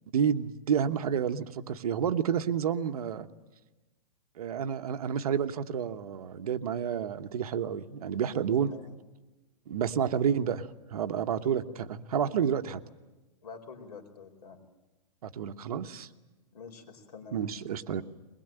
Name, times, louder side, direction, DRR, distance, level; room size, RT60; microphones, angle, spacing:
voice 1, 0.1-3.3 4.4-8.7 9.7-12.8 15.2-16.1 17.3-18.0, right 8 dB, 65° right, 9 dB, 1.2 m, -30 dB
voice 2, 8.5-8.9 13.4-14.6 16.5-17.5, left 5 dB, 70° left, 4 dB, 4.7 m, -47 dB
22.0 x 21.0 x 9.1 m, 1.1 s
hypercardioid pair, 175°, 21 cm